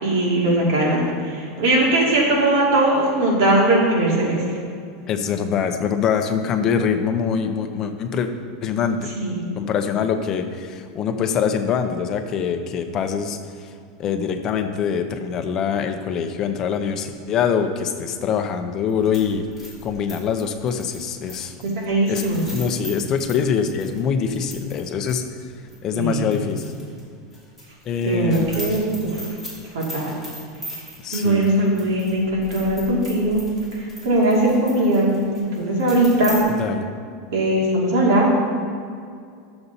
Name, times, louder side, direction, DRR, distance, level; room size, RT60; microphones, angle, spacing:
voice 1, 0.0-4.4 9.1-9.3 21.6-22.5 25.9-26.3 28.0-29.2 29.7-30.1 31.1-33.4 34.0-36.4 37.3-38.3, right 1 dB, 70° right, -4 dB, 2.4 m, -20 dB
voice 2, 5.1-8.3 8.6-9.1 9.6-13.7 14.0-19.4 19.8-21.5 22.1-22.2 22.5-25.2 25.8-26.7 27.8-28.5 31.0-31.5 36.5-36.9, left 7 dB, 25° left, 6 dB, 0.6 m, -24 dB
sound 1, 18.9-24.8 25.1-25.2 25.7-27.0 27.3-36.4, equal, 5° right, 2.3 m, -39 dB
11.0 x 7.0 x 4.1 m, 2.3 s
supercardioid pair, 170°, 2 cm